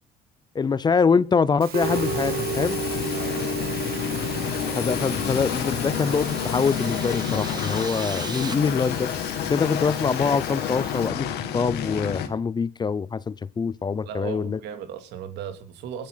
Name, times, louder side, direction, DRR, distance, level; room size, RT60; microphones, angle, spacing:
voice 1, 0.5-2.8 4.8-9.1 9.5-14.6, left 5 dB, 25° left, 0.6 m, -24 dB
Musical instrument, 1.6-11.1, right 12 dB, 65° right, 1.1 m, -35 dB
sound 1, 1.8-12.3, left 9 dB, 80° left, 2.1 m, -29 dB
voice 2, 3.1-3.8 14.0-16.1, right 8 dB, 85° right, 2.6 m, -37 dB
sound 2, 4.5-8.5, right 4 dB, 25° right, 1.7 m, -40 dB
24.5 x 10.5 x 4.0 m
cardioid pair, 110°, 17 cm